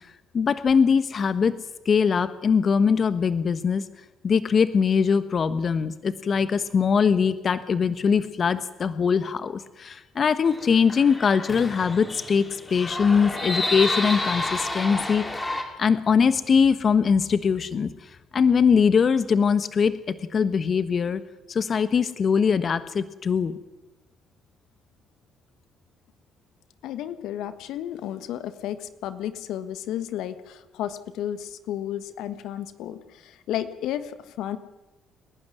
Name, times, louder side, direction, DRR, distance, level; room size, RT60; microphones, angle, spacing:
voice 1, 0.3-1.6 1.8-3.8 4.2-15.5 15.8-17.9 18.3-20.0 20.3-21.2 21.5-23.6, left 6 dB, 45° left, 13 dB, 1.3 m, -22 dB
sound 1, 10.5-15.6, left 2 dB, 20° left, 5.9 m, -30 dB
voice 2, 26.8-34.6, left 11 dB, 75° left, 11 dB, 1.4 m, -33 dB
29.5 x 12.0 x 9.7 m, 1.1 s
hypercardioid pair, 55°, 0 cm